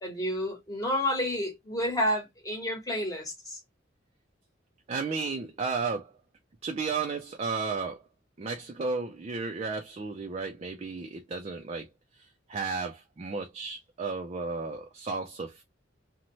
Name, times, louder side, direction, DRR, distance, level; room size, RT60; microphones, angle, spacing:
voice 1, 0.0-3.6, left 1 dB, 20° left, 1.1 m, -30 dB
voice 2, 4.9-6.1 6.6-8.0 8.4-11.9 12.5-15.6, right 4 dB, 35° right, 0.4 m, -33 dB
2.7 x 2.1 x 2.9 m
head